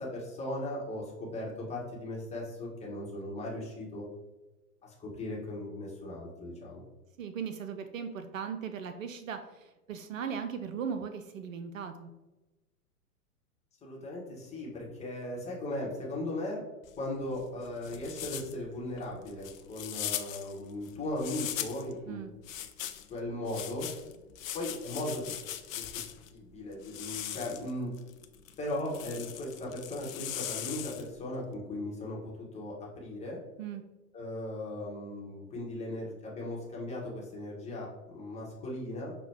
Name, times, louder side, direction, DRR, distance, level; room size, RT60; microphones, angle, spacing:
voice 1, 0.0-4.0 4.8-6.8 13.8-16.6 17.0-22.2 23.1-23.9 24.5-25.4 25.7-26.0 26.3-27.9 28.6-33.4 34.1-39.1, left 1 dB, 15° left, -4 dB, 1.1 m, -37 dB
voice 2, 7.2-12.1 22.1-22.3 33.6-33.8, right 7 dB, 60° right, 7 dB, 0.5 m, -38 dB
sound 1, 16.8-21.9 22.4-26.3 26.8-31.2, left 11 dB, 60° left, 0.5 m, -40 dB
5.7 x 2.2 x 3.5 m, 1.1 s
figure-of-eight pair, 100°, 45 cm